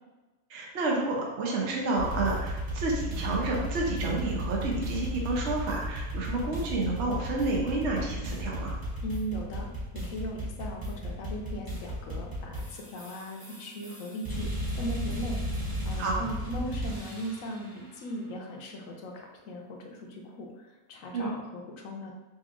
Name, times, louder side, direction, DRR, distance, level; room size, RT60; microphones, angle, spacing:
voice 1, 0.5-8.8 16.0-16.2 21.1-21.3, right 2 dB, 60° right, -1 dB, 1.0 m, -30 dB
sound 1, 2.0-17.5, equal, 20° right, 0.7 m, -34 dB
voice 2, 9.0-22.1, equal, 70° left, 1 dB, 1.1 m, -38 dB
5.2 x 2.5 x 2.5 m, 1.1 s
omnidirectional pair, 1.5 m